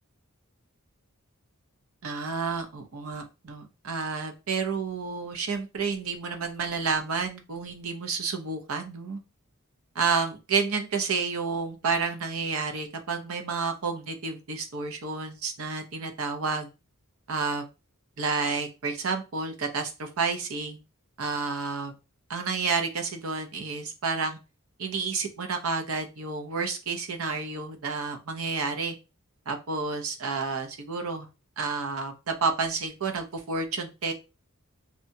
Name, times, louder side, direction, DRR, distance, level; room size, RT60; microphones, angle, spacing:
voice 1, 2.0-9.2 9.9-16.7 17.3-17.7 18.2-20.8 21.2-21.9 22.3-24.4 24.8-29.0 29.5-31.3 31.6-34.1, right 4 dB, 70° right, 5 dB, 0.6 m, -30 dB
2.7 x 2.2 x 2.6 m, 0.28 s
head